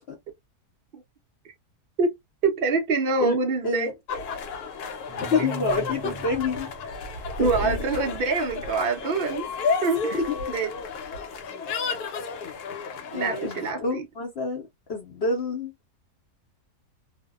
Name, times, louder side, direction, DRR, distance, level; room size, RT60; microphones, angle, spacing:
voice 1, 2.4-3.9 7.4-9.5 9.8-10.2 10.5-10.7 13.1-14.0, right 4 dB, 70° right, 0.5 m, -25 dB
sound 1, 4.1-13.7, left 4 dB, 80° left, 1.2 m, -32 dB
sound 2, 5.1-7.6, right 4 dB, 45° right, 1.0 m, -39 dB
voice 2, 5.2-6.7 7.0-7.8 10.1-10.6 13.1-15.7, left 3 dB, 55° left, 0.8 m, -28 dB
2.6 x 2.1 x 2.3 m
omnidirectional pair, 1.7 m